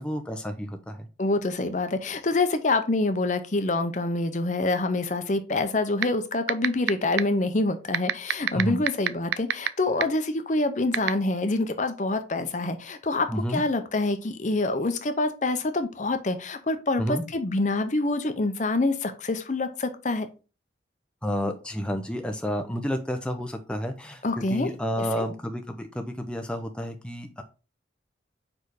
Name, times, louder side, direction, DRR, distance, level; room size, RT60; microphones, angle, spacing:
voice 1, 0.0-1.0 8.5-8.8 13.3-13.6 17.0-17.2 21.2-24.2 24.5-27.4, equal, 5° left, 5 dB, 0.5 m, -30 dB
voice 2, 1.2-20.3 24.2-24.7 25.0-25.1, left 2 dB, 40° left, 9 dB, 0.7 m, -26 dB
sound 1, 6.0-6.1 6.5-6.9 7.2-7.3 7.9-9.7 10.0-10.1 10.9-11.1, right 10 dB, 80° right, 0.4 m, -21 dB
4.8 x 4.7 x 4.7 m, 0.33 s
head